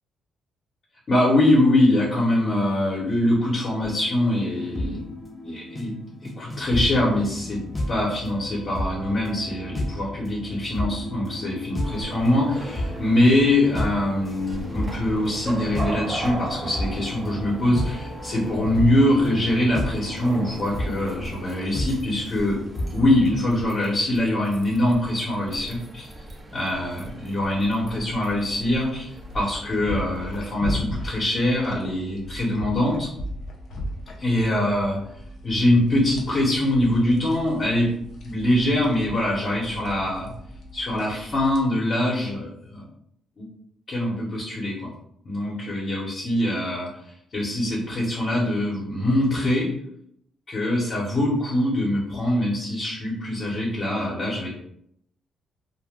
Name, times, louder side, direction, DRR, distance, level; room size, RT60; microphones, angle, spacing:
voice 1, 1.1-5.1 5.4-7.6 7.9-22.6 22.9-26.1 26.5-33.1 34.2-35.0 35.4-37.9 38.2-40.3 40.7-42.8 43.4-43.5 43.9-44.9 45.2-46.9 47.3-49.7 50.5-54.5, left 1 dB, 45° left, -5 dB, 0.9 m, -23 dB
sound 1, 3.8-23.4, left 1 dB, 25° left, 0.7 m, -33 dB
sound 2, 11.8-30.5, right 1 dB, 25° right, 0.5 m, -38 dB
sound 3, 27.5-41.6, left 1 dB, 65° left, 0.6 m, -37 dB
2.2 x 2.2 x 3.5 m, 0.70 s
cardioid pair, 90°, 0 cm